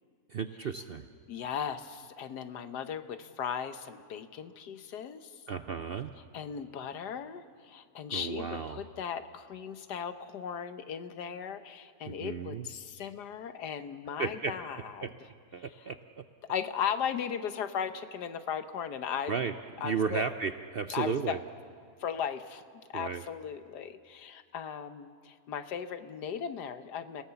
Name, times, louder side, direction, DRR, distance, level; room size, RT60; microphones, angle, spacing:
voice 1, 0.3-1.0 5.5-6.1 8.1-8.8 12.1-12.7 14.2-14.5 15.0-15.1 15.5-16.0 19.3-19.5 19.8-21.4 22.9-23.2, right 6 dB, 55° right, 9 dB, 0.6 m, -33 dB
voice 2, 1.3-5.3 6.3-15.1 16.5-19.4 19.8-20.3 20.9-21.4 22.0-22.6 22.9-27.2, left 8 dB, 85° left, 10 dB, 1.6 m, -37 dB
29.5 x 17.5 x 7.0 m, 2.1 s
omnidirectional pair, 1.7 m